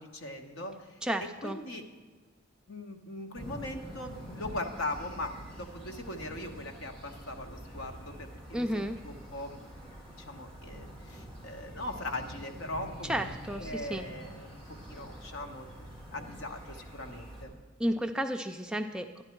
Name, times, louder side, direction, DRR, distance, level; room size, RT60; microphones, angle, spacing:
voice 1, 0.0-1.0 1.4-1.8 2.7-13.2 13.6-17.5, left 2 dB, 70° left, 4 dB, 1.2 m, -40 dB
voice 2, 1.0-1.6 8.5-9.0 13.0-14.0 17.8-19.2, equal, 5° right, 4 dB, 0.4 m, -32 dB
sound 1, 3.3-17.4, right 1 dB, 25° left, 3.3 m, -46 dB
12.5 x 10.5 x 4.5 m, 1.4 s
head